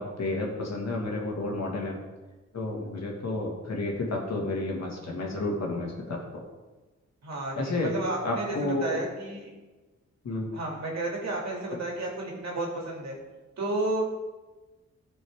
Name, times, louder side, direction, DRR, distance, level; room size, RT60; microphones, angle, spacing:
voice 1, 0.0-2.0 2.5-6.4 7.6-7.9 8.2-9.0 10.2-10.5, left 2 dB, 65° left, 0 dB, 2.0 m, -31 dB
voice 2, 7.2-9.5 10.5-13.1 13.6-14.0, right 2 dB, 65° right, -2 dB, 2.5 m, -32 dB
13.5 x 5.4 x 3.6 m, 1.2 s
cardioid pair, 90°, 29 cm